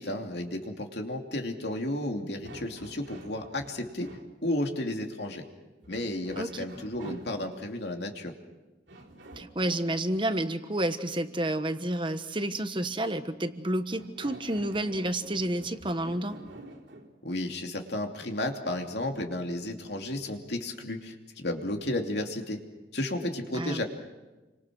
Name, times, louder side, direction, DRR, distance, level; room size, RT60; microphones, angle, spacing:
voice 1, 0.0-4.1 4.4-5.4 5.9-8.3 17.2-22.6 22.9-23.8, left 1 dB, 60° left, 3 dB, 2.9 m, -33 dB
sound 1, 2.4-4.3 5.8-7.5 8.9-10.2 13.9-17.1, right 1 dB, 70° right, 3.9 m, -48 dB
voice 2, 9.4-16.4 23.6-23.8, right 1 dB, 25° right, 9 dB, 1.3 m, -30 dB
29.5 x 25.0 x 6.2 m, 1.1 s
head